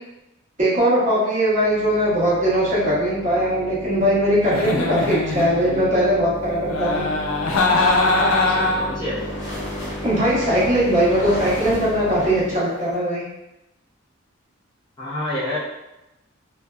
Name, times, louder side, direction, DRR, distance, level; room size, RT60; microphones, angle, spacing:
voice 1, 0.6-7.1 10.0-13.2, equal, 35° right, -8 dB, 0.8 m, -20 dB
sound 1, 1.5-12.6, left 1 dB, 70° right, 0.8 m, -34 dB
Giggle, 4.4-5.9 6.7-9.0, left 2 dB, 85° left, 0.4 m, -21 dB
sound 2, 8.0-13.0, left 1 dB, 60° left, 0.9 m, -35 dB
voice 2, 8.5-9.3 15.0-15.6, left 1 dB, 20° left, -8 dB, 0.5 m, -28 dB
2.5 x 2.2 x 2.3 m, 0.94 s
head